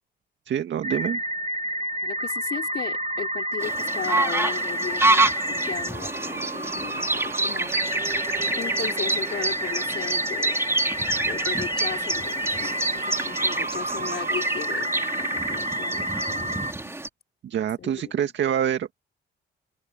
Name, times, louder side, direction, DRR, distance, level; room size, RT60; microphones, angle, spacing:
voice 1, 0.5-1.2 17.4-18.9, right 9 dB, 65° right, 2.0 m, -26 dB
sound 1, 0.8-16.7, right 1 dB, 30° right, 1.8 m, -30 dB
voice 2, 2.0-7.7 8.5-10.6 11.3-16.7 17.8-18.3, left 8 dB, 55° left, 4.5 m, -36 dB
sound 2, 3.6-17.1, right 2 dB, 15° right, 2.9 m, -27 dB
open air
cardioid pair, 90°, 20 cm